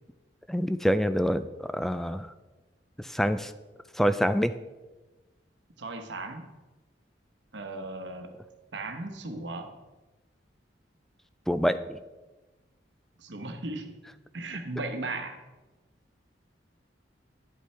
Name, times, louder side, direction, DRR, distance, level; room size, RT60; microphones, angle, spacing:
voice 1, 0.5-1.5 1.7-2.3 3.0-3.5 4.0-4.5 11.5-12.0, equal, ahead, 12 dB, 0.3 m, -26 dB
voice 2, 5.8-6.5 7.5-8.3 8.7-9.7 13.2-14.0 14.3-15.4, right 2 dB, 70° right, 6 dB, 1.0 m, -36 dB
10.5 x 8.3 x 3.3 m, 1.2 s
head